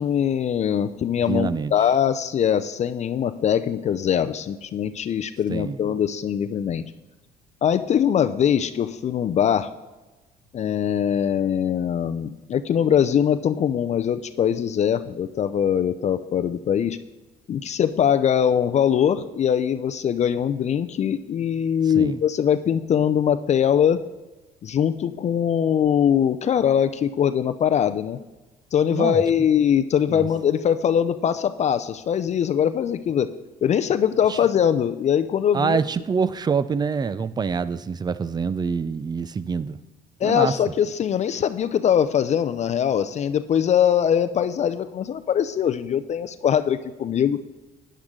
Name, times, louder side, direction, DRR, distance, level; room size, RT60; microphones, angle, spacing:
voice 1, 0.0-6.8 7.6-9.7 10.5-17.0 17.5-24.0 24.6-28.2 28.7-33.3 33.6-35.8 40.2-47.4, left 8 dB, 40° left, 0.5 m, -22 dB
voice 2, 1.3-1.7 5.5-5.8 21.9-22.2 28.9-29.2 30.1-30.3 34.3-34.4 35.5-39.8 40.2-40.5, right 5 dB, 25° right, 0.5 m, -25 dB
13.0 x 10.0 x 3.7 m
cardioid pair, 110°, 17 cm